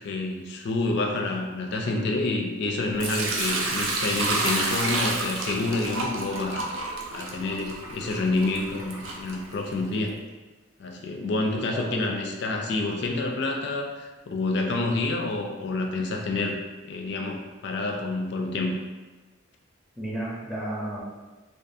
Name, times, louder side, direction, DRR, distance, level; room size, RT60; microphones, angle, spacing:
voice 1, 0.0-6.7 7.1-10.2 10.8-16.6 16.8-18.8, left 2 dB, 55° left, 1 dB, 0.3 m, -28 dB
Sink (filling or washing) / Liquid, 3.0-9.9, right 2 dB, 80° right, 0.4 m, -30 dB
voice 2, 11.7-12.1 20.0-21.0, right 1 dB, ahead, -7 dB, 0.5 m, -32 dB
2.4 x 2.3 x 2.6 m, 1.2 s
head